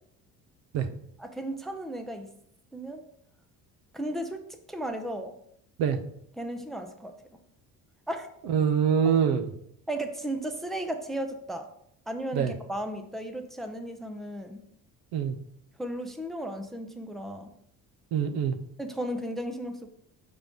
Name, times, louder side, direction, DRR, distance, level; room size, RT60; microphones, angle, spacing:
voice 1, 1.2-2.3 2.7-3.0 3.9-5.3 6.4-7.1 8.1-8.3 9.9-11.7 12.1-14.6 15.8-17.5 18.8-19.9, right 1 dB, ahead, 6 dB, 0.5 m, -35 dB
voice 2, 8.5-9.5 12.3-12.5 15.1-15.3 18.1-18.6, right 7 dB, 85° right, 10 dB, 0.8 m, -24 dB
6.2 x 3.7 x 5.2 m, 0.73 s
cardioid pair, 145°, 35 cm